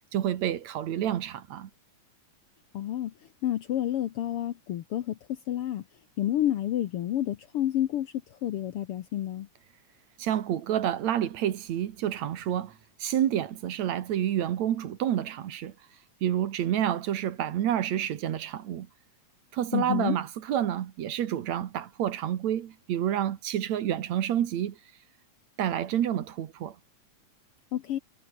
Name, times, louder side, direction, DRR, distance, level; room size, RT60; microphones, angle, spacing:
voice 1, 0.1-1.7 10.2-12.7 13.0-15.7 16.2-18.9 19.5-24.7 25.6-26.7, right 10 dB, 70° right, 2.6 m, -29 dB
voice 2, 2.7-3.1 3.4-5.2 5.5-5.8 6.2-8.1 8.4-9.5 19.7-20.2 27.7-28.0, left 12 dB, 65° left, 1.5 m, -29 dB
omnidirectional pair, 3.4 m